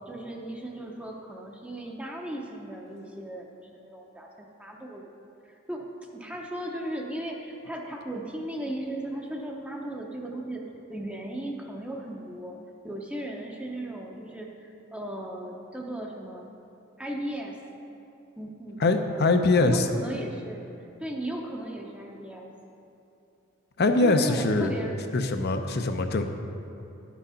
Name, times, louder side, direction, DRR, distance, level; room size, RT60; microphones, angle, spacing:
voice 1, 0.0-3.5 3.7-5.1 5.4-5.9 6.1-10.6 10.9-12.6 12.8-16.5 17.0-17.6 18.4-20.7 21.0-22.5 24.0-25.0, right 1 dB, 5° right, 0 dB, 0.7 m, -36 dB
voice 2, 18.8-19.9 23.8-24.7 25.1-26.2, left 3 dB, 55° left, 6 dB, 0.6 m, -23 dB
10.5 x 6.3 x 5.6 m, 2.8 s
head